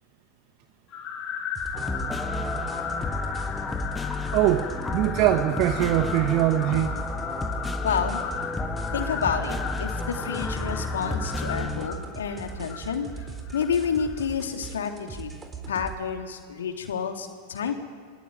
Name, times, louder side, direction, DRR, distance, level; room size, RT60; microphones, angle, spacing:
sound 1, 0.9-14.3, left 6 dB, 35° left, 4.3 m, -36 dB
sound 2, 1.5-16.0, right 4 dB, 15° right, 3.9 m, -40 dB
sound 3, 1.7-11.9, left 2 dB, 10° left, 1.9 m, -32 dB
voice 1, 4.3-6.9, right 13 dB, 40° right, 8 dB, 1.3 m, -22 dB
voice 2, 7.8-8.2 8.9-13.1 13.5-15.3 15.7-17.7, left 7 dB, 65° left, 4 dB, 3.2 m, -29 dB
28.0 x 20.5 x 9.4 m, 2.1 s
figure-of-eight pair, 90°, 0 cm